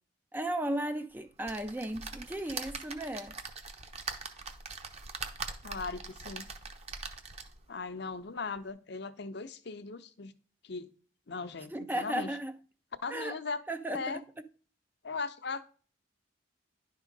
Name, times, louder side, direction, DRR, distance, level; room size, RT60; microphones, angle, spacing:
voice 1, 0.3-3.4 11.7-12.6 13.1-13.4 13.7-14.0, right 1 dB, 10° right, 0.4 m, -35 dB
sound 1, 1.4-7.7 8.2-8.3 8.6-8.7, right 4 dB, 30° right, 0.8 m, -42 dB
voice 2, 5.6-6.5 7.7-10.3 10.6-10.9 11.3-12.4 13.0-13.6 13.9-14.2 15.0-15.6, left 4 dB, 55° left, 0.7 m, -38 dB
10.5 x 3.7 x 5.2 m
head